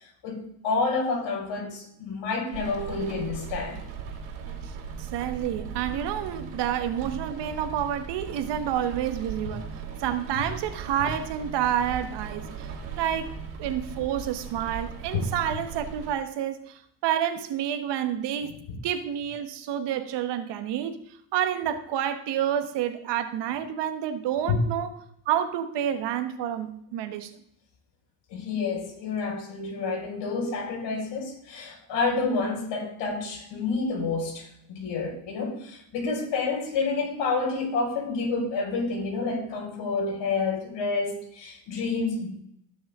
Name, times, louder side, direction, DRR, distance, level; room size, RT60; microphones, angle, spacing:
voice 1, 0.2-3.8 15.1-15.3 18.7-18.8 24.5-24.6 28.3-42.3, left 4 dB, 70° left, 0 dB, 4.6 m, -29 dB
Rain, 2.5-16.1, right 6 dB, 90° right, 2.8 m, -38 dB
voice 2, 5.0-9.7 10.0-12.7 13.0-18.6 18.8-21.0 21.3-24.9 25.3-27.3, right 10 dB, 65° right, 10 dB, 1.3 m, -29 dB
17.5 x 6.2 x 3.6 m, 0.70 s
supercardioid pair, 100°, 45 cm